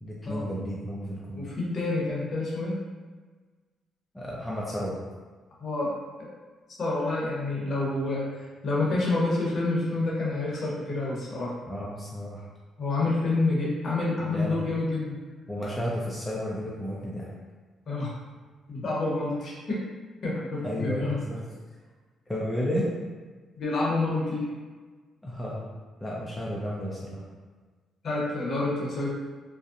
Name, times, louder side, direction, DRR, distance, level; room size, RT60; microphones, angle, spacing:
voice 1, 0.0-1.6 4.1-5.0 11.7-12.5 14.2-14.7 15.5-17.3 20.6-21.4 22.3-22.9 25.2-25.7 26.0-27.2, equal, 10° left, -6 dB, 0.4 m, -32 dB
voice 2, 1.4-2.7 5.6-5.9 6.2-6.3 6.8-11.5 12.8-15.2 17.9-18.1 18.7-19.8 20.2-21.1 23.6-24.5 28.0-29.1, left 2 dB, 50° left, -6 dB, 0.8 m, -28 dB
2.6 x 2.0 x 2.4 m, 1.4 s
cardioid pair, 90°, 0 cm